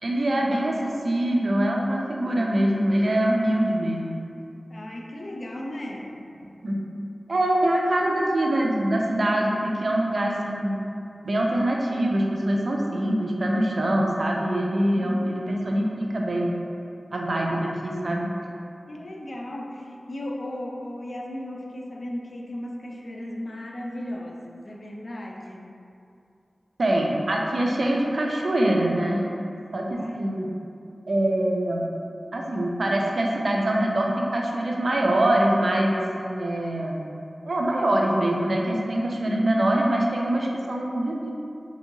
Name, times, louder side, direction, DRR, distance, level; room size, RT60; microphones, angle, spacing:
voice 1, 0.0-4.2 6.6-6.9 7.3-10.8 11.2-16.6 17.1-18.3 26.8-29.3 29.7-30.5 31.1-31.9 32.3-37.0 37.5-41.3, right 1 dB, 70° right, -1 dB, 0.4 m, -24 dB
voice 2, 4.7-6.2 14.9-15.3 18.9-25.8 29.9-30.3, left 1 dB, 60° left, 0 dB, 0.3 m, -36 dB
2.7 x 2.6 x 2.6 m, 2.5 s
cardioid pair, 40°, 0 cm